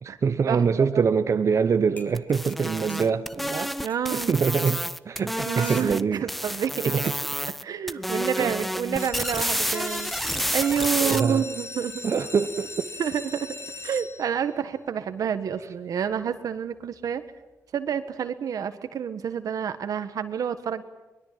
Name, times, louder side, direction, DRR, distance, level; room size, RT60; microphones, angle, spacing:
voice 1, 0.0-3.8 4.1-6.2 6.9-7.0 8.3-8.6 11.0-11.4 12.0-12.9, right 6 dB, 55° right, 8 dB, 0.9 m, -24 dB
sound 1, 1.6-1.7 2.0-3.1 3.9-4.0 4.7-4.8 5.2-6.2 7.0-7.3 8.4-8.7, left 1 dB, 30° left, 3.6 m, -46 dB
sound 2, 2.1-6.0 6.3-7.6 7.9-11.2, equal, ahead, 0.7 m, -30 dB
voice 2, 3.8-4.3 5.5-6.9 7.6-12.0 13.0-13.5 13.8-17.2 17.7-20.8, right 8 dB, 80° right, 10 dB, 1.5 m, -29 dB
sound 3, 9.0-14.6 15.2-15.7 16.1-16.2 16.4-16.5 17.0-17.1, left 3 dB, 45° left, 1.8 m, -39 dB
23.5 x 21.0 x 7.6 m, 1.1 s
cardioid pair, 90°, 6 cm